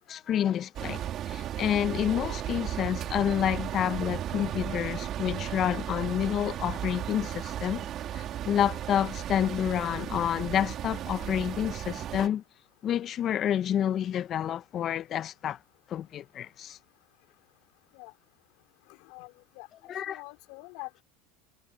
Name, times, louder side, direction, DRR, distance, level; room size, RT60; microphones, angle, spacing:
voice 1, 0.1-7.8 8.1-12.4 12.8-15.6 15.9-16.8 19.9-20.2, left 10 dB, 45° left, 1.1 m, -29 dB
sound 1, 0.7-12.3, right 11 dB, 45° right, 3.7 m, -35 dB
voice 2, 18.9-19.7 20.1-21.0, left 29 dB, 65° left, 3.6 m, -45 dB
hypercardioid pair, 90°, 0 cm